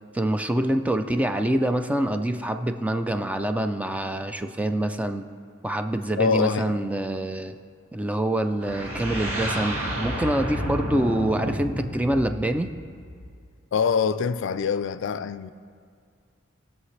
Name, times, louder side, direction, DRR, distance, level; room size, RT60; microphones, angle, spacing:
voice 1, 0.1-5.2 5.6-7.6 7.9-12.7, right 1 dB, 5° right, 0.4 m, -26 dB
voice 2, 6.2-6.8 13.7-15.5, left 6 dB, 65° left, 0.4 m, -24 dB
sound 1, 8.6-13.4, equal, 70° right, 1.9 m, -31 dB
19.5 x 6.6 x 3.2 m
head